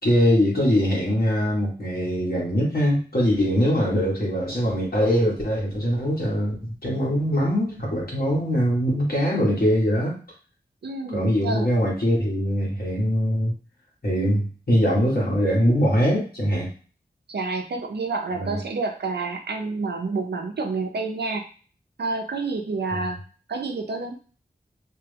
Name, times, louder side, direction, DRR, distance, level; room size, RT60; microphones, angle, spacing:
voice 1, 0.0-10.1 11.1-13.5 14.0-16.7 18.3-18.6 22.9-23.0, equal, 65° left, -5 dB, 1.7 m, -22 dB
voice 2, 10.8-11.7 17.3-21.4 22.0-23.2 23.5-24.1, right 3 dB, 85° right, 3 dB, 0.6 m, -28 dB
3.2 x 2.2 x 3.4 m, 0.39 s
wide cardioid pair, 50°, 17 cm